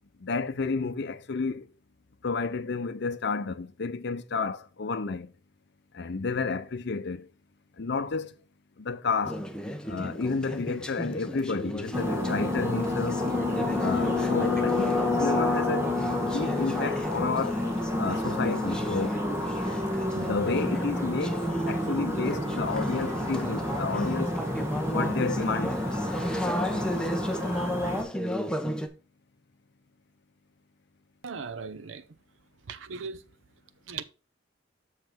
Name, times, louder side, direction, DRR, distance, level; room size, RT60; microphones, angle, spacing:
voice 1, 0.2-1.7 2.2-5.3 5.9-7.3 7.8-8.3 8.8-9.4 9.9-13.2 13.8-15.9 16.3-17.6 18.0-19.2 20.1-24.3 24.9-25.8, left 4 dB, 60° left, 0.7 m, -31 dB
Conversation / Chatter, 9.2-28.9, equal, 5° left, 0.8 m, -35 dB
sound 1, 11.9-28.0, left 2 dB, 15° right, 1.6 m, -29 dB
voice 2, 31.2-32.0 32.7-33.2 33.9-34.0, right 5 dB, 85° right, 0.7 m, -37 dB
6.5 x 5.8 x 4.4 m
head